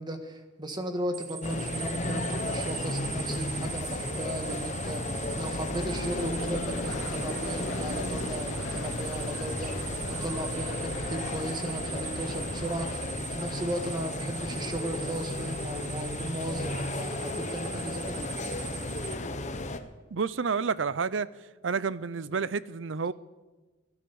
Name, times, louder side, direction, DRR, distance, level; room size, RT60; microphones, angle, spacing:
voice 1, 0.0-18.2, right 1 dB, 25° right, 1.6 m, -36 dB
sound 1, 1.1-19.1, right 8 dB, 40° right, 1.3 m, -41 dB
sound 2, 1.4-19.8, left 2 dB, 40° left, 1.0 m, -34 dB
sound 3, 5.7-13.0, left 2 dB, 80° left, 1.3 m, -41 dB
voice 2, 20.1-21.3 21.6-23.1, right 5 dB, 75° right, 0.6 m, -29 dB
17.0 x 10.5 x 7.1 m
head